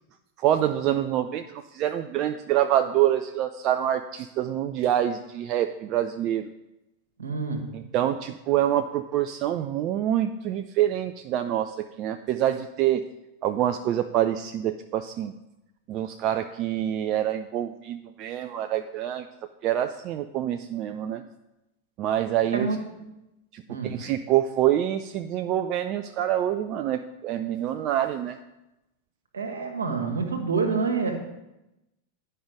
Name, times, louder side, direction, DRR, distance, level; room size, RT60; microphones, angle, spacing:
voice 1, 0.4-6.5 7.7-13.0 13.4-15.3 15.9-19.3 19.6-21.2 22.0-22.7 23.5-28.4, right 11 dB, 40° right, 8 dB, 0.4 m, -26 dB
voice 2, 7.2-7.6 22.5-23.0 23.7-24.0 29.3-31.2, right 4 dB, 70° right, 4 dB, 1.5 m, -27 dB
10.0 x 5.5 x 4.9 m, 0.95 s
figure-of-eight pair, 90°, 0 cm